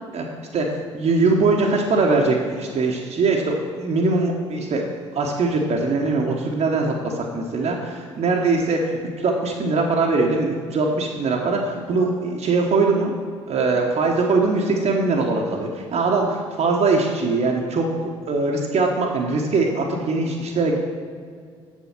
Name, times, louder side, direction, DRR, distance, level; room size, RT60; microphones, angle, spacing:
voice 1, 0.9-4.8 5.1-13.1 13.5-20.8, right 3 dB, 45° right, 0 dB, 1.2 m, -21 dB
7.5 x 7.3 x 6.0 m, 2.1 s
figure-of-eight pair, 45°, 15 cm